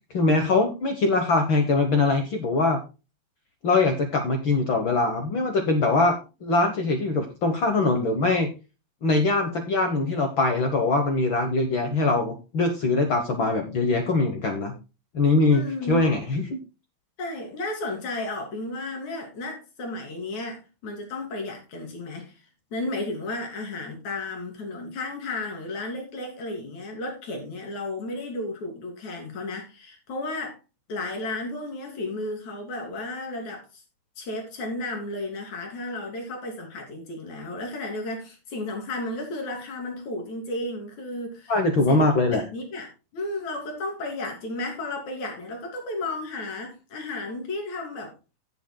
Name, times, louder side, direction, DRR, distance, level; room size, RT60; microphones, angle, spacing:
voice 1, 0.1-2.8 3.6-8.5 9.0-14.7 15.1-16.6 41.5-42.4, left 3 dB, 85° left, 1.0 m, -22 dB
voice 2, 15.5-16.0 17.2-22.4 22.7-30.6 30.9-33.8 34.2-41.6 41.9-42.1 42.3-48.1, left 2 dB, 55° left, 4.3 m, -33 dB
16.5 x 7.8 x 2.2 m
omnidirectional pair, 4.1 m